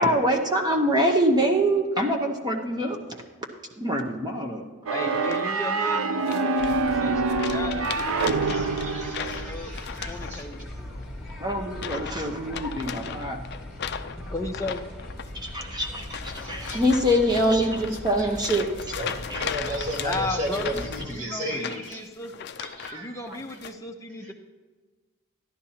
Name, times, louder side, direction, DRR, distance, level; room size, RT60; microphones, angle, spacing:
voice 1, 0.0-3.0 3.8-4.6 11.4-13.4 15.3-18.7 19.3-19.4 23.3-23.4, equal, 20° right, 2 dB, 0.9 m, -24 dB
voice 2, 4.9-9.7 10.1-10.9 14.3-14.8 20.0-20.7 21.0-24.3, left 2 dB, 15° left, 3 dB, 0.7 m, -35 dB
sound 1, 4.9-9.6, right 3 dB, 70° right, 0.5 m, -26 dB
sound 2, 5.1-5.6 6.3-7.0 7.3-10.7 11.0-11.3 11.7-12.2 12.5-23.0 23.3-23.7, left 8 dB, 45° left, 0.4 m, -37 dB
sound 3, 6.6-21.1, left 1 dB, 5° right, 1.9 m, -39 dB
voice 3, 8.2-10.5 16.4-16.8 17.6-22.1 22.6-23.6 24.2-24.3, equal, 35° right, -1 dB, 1.7 m, -35 dB
14.5 x 11.0 x 2.9 m, 1.4 s
head